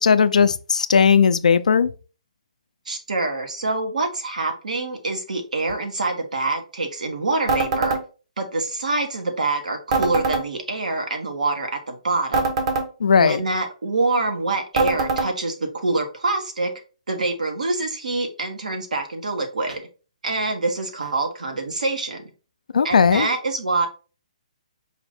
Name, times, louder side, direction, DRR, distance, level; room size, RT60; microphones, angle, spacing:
voice 1, 0.0-1.9 13.0-13.4 22.7-23.3, left 6 dB, 80° left, 0.4 m, -17 dB
voice 2, 2.9-8.0 8.4-12.5 13.2-16.7 17.1-19.8 20.2-22.2 22.8-23.9, right 3 dB, 85° right, 1.2 m, -25 dB
sound 1, 7.5-8.0 9.9-10.4 12.3-12.9 14.8-15.3, right 3 dB, 50° right, 1.0 m, -22 dB
4.9 x 2.6 x 3.4 m
hypercardioid pair, 145°, 4 cm